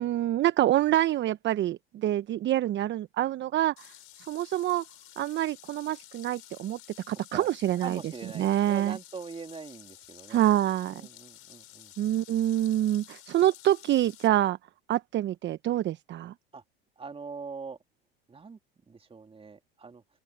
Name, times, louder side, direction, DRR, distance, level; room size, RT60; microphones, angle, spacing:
voice 1, 0.0-4.9 5.2-6.8 7.1-8.0 8.4-9.0 10.3-11.0 12.0-14.6 14.9-16.3, right 13 dB, 40° right, 1.0 m, -26 dB
sound 1, 3.8-14.3, left 14 dB, 50° left, 4.7 m, -52 dB
voice 2, 7.8-10.4 10.9-11.9 16.5-16.6 17.0-17.8 18.3-18.6 18.9-20.0, right 5 dB, 20° right, 3.1 m, -42 dB
open air
hypercardioid pair, 85°, 29 cm